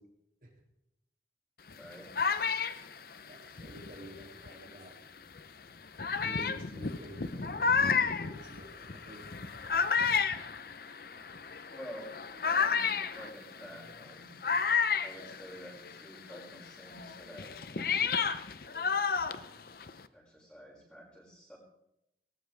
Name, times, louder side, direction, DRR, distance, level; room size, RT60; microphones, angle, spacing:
sound 1, 1.7-4.7 5.4-5.5 6.0-16.0 16.3-20.0, left 5 dB, 55° left, 0.7 m, -32 dB
voice 1, 1.7-2.1 11.7-12.1 12.4-14.3 15.0-17.6 20.1-21.6, equal, 5° left, -4 dB, 5.8 m, -49 dB
voice 2, 3.3-4.9 6.2-7.8 8.2-9.5, right 1 dB, 50° right, -2 dB, 2.7 m, -50 dB
19.0 x 19.0 x 3.5 m, 0.83 s
head